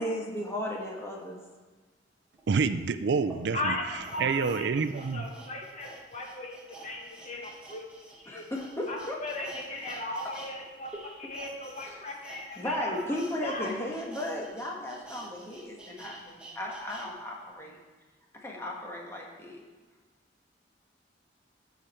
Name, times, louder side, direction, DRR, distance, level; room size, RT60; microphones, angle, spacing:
voice 1, 0.0-1.4 8.3-9.5 10.0-10.3 11.9-12.0 12.5-17.8 18.4-19.6, left 1 dB, 15° left, -2 dB, 1.4 m, -35 dB
sound 1, 2.4-2.5 3.1-10.5 10.8-17.1 17.5-17.6, right 2 dB, 5° right, 1.3 m, -49 dB
voice 2, 2.5-3.7 4.2-5.3, right 5 dB, 65° right, 12 dB, 0.4 m, -27 dB
voice 3, 3.5-7.8 8.2-8.4 8.9-10.9 11.2-13.7, left 1 dB, 40° left, -1 dB, 1.6 m, -37 dB
14.0 x 4.9 x 4.4 m, 1.3 s
head